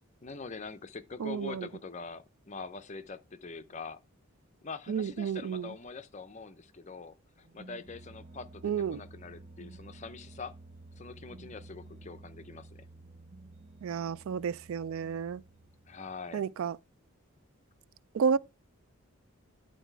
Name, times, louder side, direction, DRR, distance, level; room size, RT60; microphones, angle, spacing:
voice 1, 0.2-4.0 4.6-10.6 11.0-12.9 15.9-16.4, left 4 dB, 30° left, 0.6 m, -44 dB
voice 2, 1.2-1.7 4.9-5.7 8.6-9.0 13.8-15.4 16.3-16.8 18.1-18.4, right 6 dB, 70° right, 0.3 m, -31 dB
sound 1, 7.4-16.2, right 2 dB, 35° right, 0.7 m, -52 dB
10.0 x 4.0 x 4.5 m
head